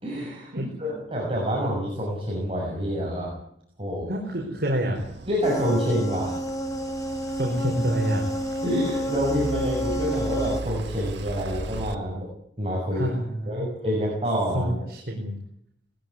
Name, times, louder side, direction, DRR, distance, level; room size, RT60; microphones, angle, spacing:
voice 1, 0.0-0.5 0.8-3.3 3.8-4.1 5.3-6.4 8.6-12.3 12.6-13.2 13.5-14.8, equal, 30° right, -3 dB, 6.3 m, -27 dB
voice 2, 4.1-5.0 7.3-8.2 12.9-13.7 14.5-15.3, equal, 65° right, 0 dB, 4.8 m, -27 dB
sound 1, 4.9-11.9, right 1 dB, 90° right, 1.5 m, -37 dB
sound 2, 5.4-10.6, equal, 20° left, 1.5 m, -30 dB
20.0 x 15.5 x 9.7 m, 0.72 s
head